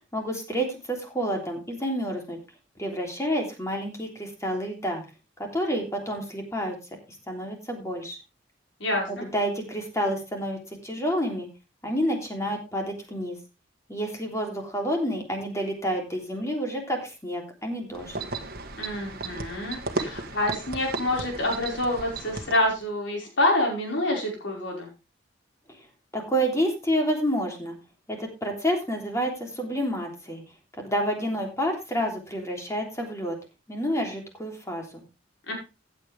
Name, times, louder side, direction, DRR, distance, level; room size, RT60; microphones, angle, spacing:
voice 1, 0.1-2.4 2.8-5.0 5.4-6.7 7.3-8.2 9.1-11.5 11.8-13.4 13.9-18.2 26.1-27.7 28.1-30.4 30.8-33.3 33.7-35.0, equal, 15° left, 2 dB, 3.3 m, -29 dB
voice 2, 8.8-9.2 18.8-24.9 35.5-35.6, left 1 dB, 75° left, 0 dB, 5.2 m, -27 dB
sound 1, 17.9-22.8, right 3 dB, 55° right, 1.6 m, -35 dB
15.0 x 8.4 x 3.4 m, 0.28 s
head